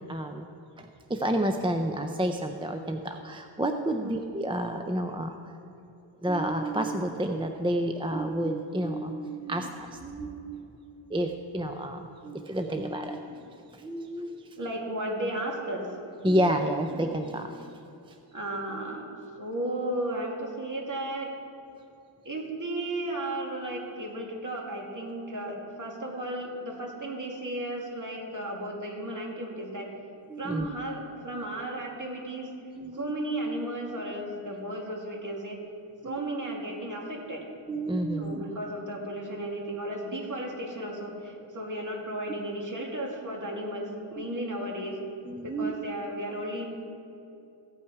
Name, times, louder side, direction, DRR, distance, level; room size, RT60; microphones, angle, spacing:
voice 1, 0.1-0.5 0.8-5.5 6.2-10.8 11.1-14.6 16.2-17.8 18.1-18.2 30.3-30.7 32.8-33.1 36.0-36.2 37.7-38.4 44.2-44.3 45.3-45.7, right 1 dB, 10° right, 5 dB, 0.4 m, -30 dB
voice 2, 14.6-15.9 18.3-19.0 19.4-21.3 22.2-29.9 30.4-32.5 32.9-35.6 36.0-37.4 38.2-45.0 45.4-46.7, right 1 dB, 40° right, -1 dB, 2.3 m, -34 dB
15.5 x 8.5 x 4.7 m, 2.7 s
wide cardioid pair, 135°, 48 cm